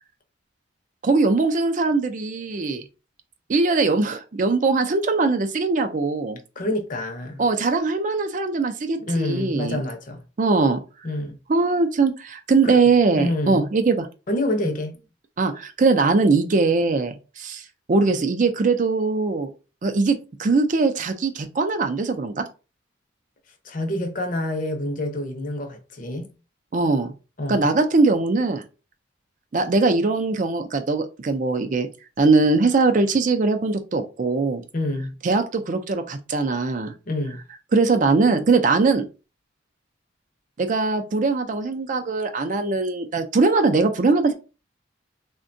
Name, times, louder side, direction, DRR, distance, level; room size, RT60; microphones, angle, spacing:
voice 1, 1.0-2.8 3.5-6.4 7.4-9.8 10.4-10.8 11.5-14.1 15.4-19.5 19.8-22.4 26.7-27.1 27.5-28.6 29.5-31.9 32.2-34.6 35.2-36.9 37.7-39.0 40.6-44.3, right 3 dB, 40° right, 0.4 m, -21 dB
voice 2, 6.6-7.4 9.0-10.2 11.0-11.4 12.6-12.8 13.2-13.6 14.3-15.0 23.6-26.3 27.4-27.7 34.7-35.1 37.1-37.4, left 1 dB, 40° left, 0.6 m, -27 dB
3.5 x 2.2 x 2.6 m
head